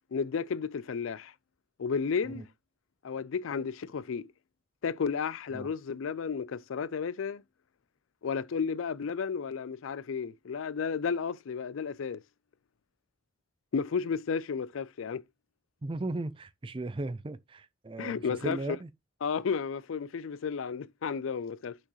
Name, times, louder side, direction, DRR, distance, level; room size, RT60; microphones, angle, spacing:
voice 1, 0.1-1.3 1.8-2.4 3.0-4.3 4.8-7.4 8.2-12.2 13.7-15.2 18.0-18.8 19.2-21.8, left 6 dB, 70° left, 0.4 m, -32 dB
voice 2, 15.8-18.9, right 2 dB, 25° right, 0.4 m, -36 dB
6.5 x 6.0 x 3.0 m
head